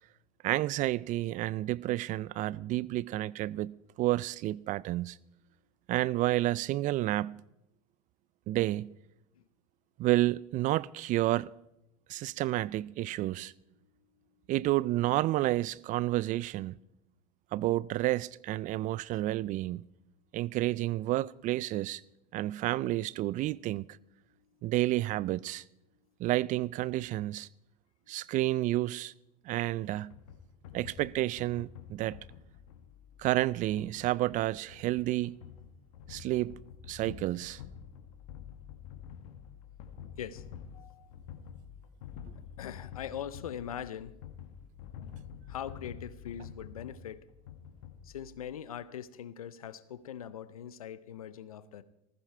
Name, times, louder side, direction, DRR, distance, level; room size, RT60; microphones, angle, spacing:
voice 1, 0.4-5.2 5.9-7.4 8.5-8.9 10.0-11.5 12.1-13.5 14.5-16.8 17.5-19.9 20.3-22.0 22.3-23.9 24.6-25.6 26.2-27.5 28.1-29.1 29.5-30.1 30.7-32.2 33.2-35.4 36.1-36.5 36.9-37.6, right 16 dB, 45° right, 0.4 m, -30 dB
sound 1, 30.1-48.5, left 8 dB, 70° left, 1.4 m, -48 dB
voice 2, 40.7-41.1 42.5-44.2 45.5-47.2 48.0-51.8, left 9 dB, 90° left, 0.7 m, -41 dB
15.0 x 14.5 x 4.4 m
hypercardioid pair, 80°, 18 cm